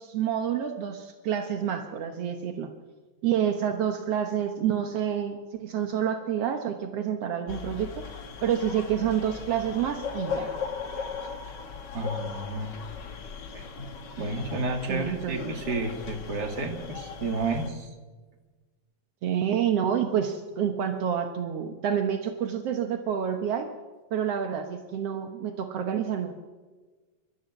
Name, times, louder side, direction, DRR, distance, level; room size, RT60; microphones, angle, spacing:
voice 1, 0.0-2.7 3.2-10.5 14.9-15.5 19.2-23.7 24.1-26.3, right 9 dB, 75° right, 6 dB, 1.4 m, -28 dB
sound 1, 7.5-17.7, left 6 dB, 55° left, 1.2 m, -38 dB
voice 2, 11.9-12.7 13.5-13.9 14.2-17.9, right 2 dB, 30° right, 4 dB, 2.4 m, -31 dB
28.5 x 13.0 x 8.1 m, 1.4 s
omnidirectional pair, 4.3 m